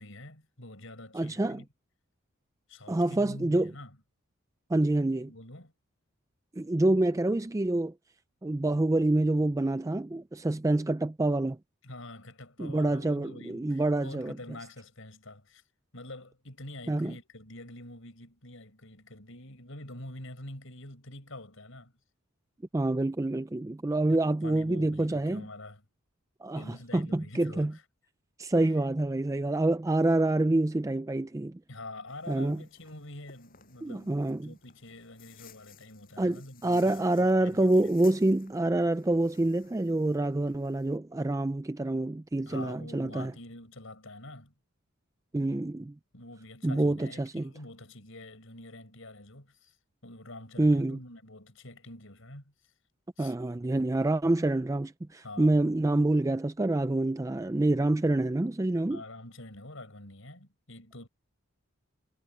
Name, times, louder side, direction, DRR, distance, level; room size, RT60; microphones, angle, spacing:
voice 1, 0.0-1.7 2.7-4.0 5.2-5.7 11.8-15.6 15.9-21.9 24.1-25.8 26.5-27.8 31.7-37.9 42.5-44.5 46.1-49.8 50.0-52.5 53.2-53.3 55.2-55.7 58.9-61.1, left 1 dB, 65° left, 5.6 m, -46 dB
voice 2, 1.1-1.6 2.9-3.7 4.7-5.3 6.6-7.9 8.4-11.6 12.6-14.4 16.9-17.1 22.7-25.4 26.4-27.7 28.4-31.6 32.3-32.6 33.8-34.5 36.2-43.3 45.3-45.9 46.6-47.5 50.6-51.0 53.2-59.0, right 2 dB, 15° right, 0.3 m, -27 dB
sound 1, 32.1-41.0, left 7 dB, 40° left, 7.4 m, -58 dB
head